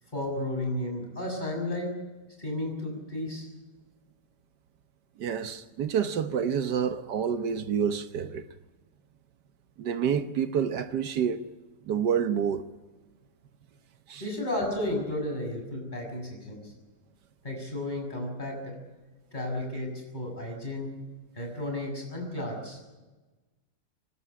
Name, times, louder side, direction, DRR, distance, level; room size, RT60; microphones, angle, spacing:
voice 1, 0.1-1.9 2.4-3.5 14.2-16.7 17.4-18.8 19.3-20.9 21.3-22.8, left 1 dB, 25° left, 6.8 m, -33 dB
voice 2, 5.2-8.4 9.8-11.4 11.8-12.7 14.1-14.2, right 7 dB, 80° right, 1.6 m, -28 dB
25.0 x 12.5 x 9.9 m
omnidirectional pair, 1.8 m